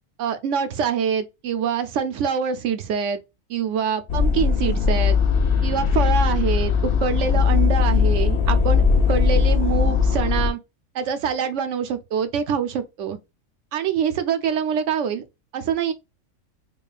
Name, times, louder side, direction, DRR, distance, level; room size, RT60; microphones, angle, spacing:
voice 1, 0.2-3.2 3.5-5.2 5.6-6.7 7.0-10.6 10.9-13.2 13.7-15.2 15.5-15.9, right 7 dB, 70° right, 0.9 m, -25 dB
sound 1, 4.1-10.5, left 6 dB, 55° left, 0.7 m, -19 dB
5.0 x 2.4 x 2.4 m
omnidirectional pair, 1.4 m